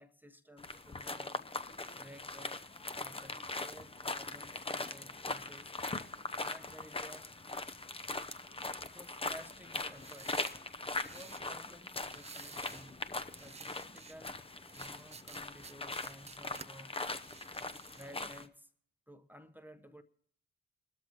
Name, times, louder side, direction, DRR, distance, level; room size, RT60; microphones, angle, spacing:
voice 1, 0.0-1.4 1.9-2.7 2.9-5.7 6.4-7.3 8.8-10.5 10.9-13.1 13.4-14.3 14.7-17.1 17.6-18.7 19.1-20.0, equal, 5° right, 1.0 m, -55 dB
sound 1, 0.6-18.5, left 3 dB, 20° left, 0.7 m, -41 dB
sound 2, 9.9-11.5 12.0-12.9 13.2-14.2 14.7-16.7 17.1-18.1, right 5 dB, 20° right, 0.4 m, -53 dB
25.0 x 13.0 x 3.0 m
hypercardioid pair, 45°, 30 cm